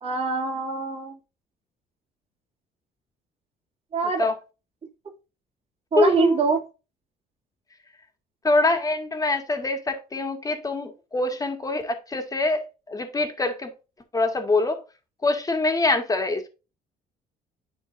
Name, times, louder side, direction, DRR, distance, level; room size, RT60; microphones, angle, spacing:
voice 1, 0.0-1.2 3.9-4.3 5.9-6.6, right 5 dB, 35° right, 2.7 m, -24 dB
voice 2, 6.0-6.4 8.4-12.6 12.9-13.7 14.1-14.8 15.2-16.5, left 2 dB, 20° left, 2.0 m, -24 dB
10.5 x 4.5 x 2.6 m
cardioid pair, 110°, 17 cm